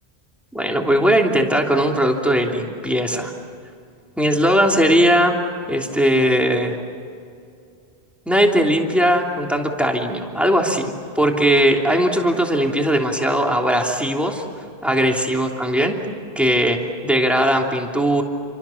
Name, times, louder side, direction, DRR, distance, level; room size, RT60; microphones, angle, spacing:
voice 1, 0.5-3.3 4.2-5.4 5.7-6.8 8.3-14.4 14.8-16.0 16.4-18.2, equal, ahead, 1 dB, 3.0 m, -19 dB
29.0 x 25.5 x 7.2 m, 2.4 s
omnidirectional pair, 1.1 m